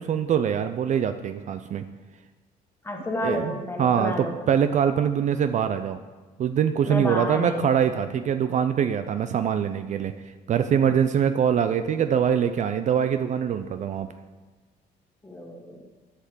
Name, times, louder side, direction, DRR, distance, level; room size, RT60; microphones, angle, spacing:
voice 1, 0.0-1.8 3.2-6.0 6.4-10.1 10.5-14.1, right 8 dB, 45° right, 9 dB, 0.5 m, -23 dB
voice 2, 2.8-4.3 6.8-7.7 15.2-15.8, left 1 dB, 15° left, 2 dB, 1.6 m, -30 dB
8.2 x 5.7 x 6.5 m, 1.2 s
cardioid pair, 110°, 17 cm